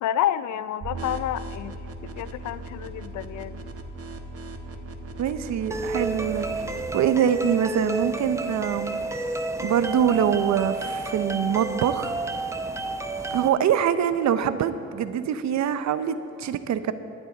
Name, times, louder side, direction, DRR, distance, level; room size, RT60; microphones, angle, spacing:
voice 1, 0.0-1.7 2.0-3.7, left 11 dB, 70° left, 16 dB, 0.5 m, -29 dB
sound 1, 0.8-6.8, right 2 dB, 50° right, 1.3 m, -38 dB
voice 2, 5.2-6.5 6.9-9.0 9.6-12.2 13.3-16.9, right 9 dB, 65° right, 12 dB, 0.7 m, -24 dB
sound 2, 5.7-13.5, right 3 dB, 10° right, 0.7 m, -30 dB
18.5 x 11.0 x 3.9 m, 2.8 s
cardioid pair, 90°, 30 cm